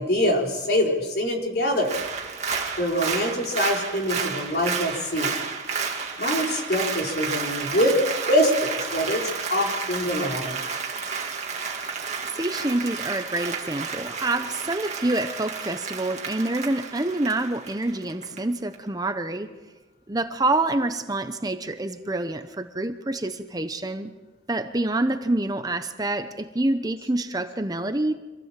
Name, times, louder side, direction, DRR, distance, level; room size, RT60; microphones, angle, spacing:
voice 1, 0.0-1.9 2.8-5.3 6.2-8.0 8.3-10.6, equal, 55° left, 0 dB, 4.3 m, -24 dB
Applause, 1.8-18.4 18.7-18.8, right 5 dB, 35° right, 2.2 m, -31 dB
voice 2, 12.3-19.5 20.1-24.1 24.5-28.1, right 2 dB, 20° right, 8 dB, 0.9 m, -27 dB
25.5 x 16.5 x 7.5 m, 1.2 s
head